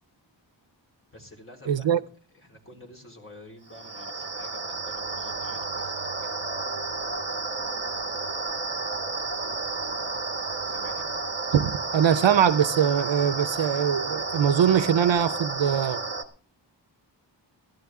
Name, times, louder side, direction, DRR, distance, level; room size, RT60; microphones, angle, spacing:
voice 1, 1.1-2.0 2.3-6.3 10.7-11.1, left 1 dB, 25° left, 3.7 m, -49 dB
voice 2, 1.7-2.0 11.5-16.0, right 8 dB, 70° right, 0.6 m, -22 dB
sound 1, 3.7-16.2, right 3 dB, 25° right, 1.3 m, -31 dB
16.5 x 12.5 x 3.6 m
wide cardioid pair, 100°, 46 cm